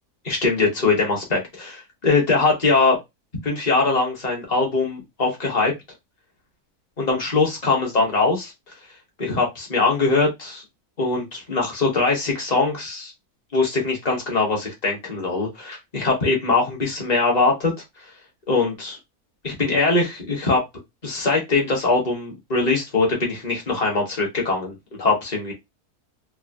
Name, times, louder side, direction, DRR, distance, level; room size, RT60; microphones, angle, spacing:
voice 1, 0.2-3.0 3.4-5.7 7.0-8.5 9.2-10.6 11.0-13.1 13.5-17.7 18.5-19.0 19.4-20.6 21.0-25.5, left 3 dB, 30° left, 1.0 m, -22 dB
3.3 x 2.1 x 2.5 m
omnidirectional pair, 1.6 m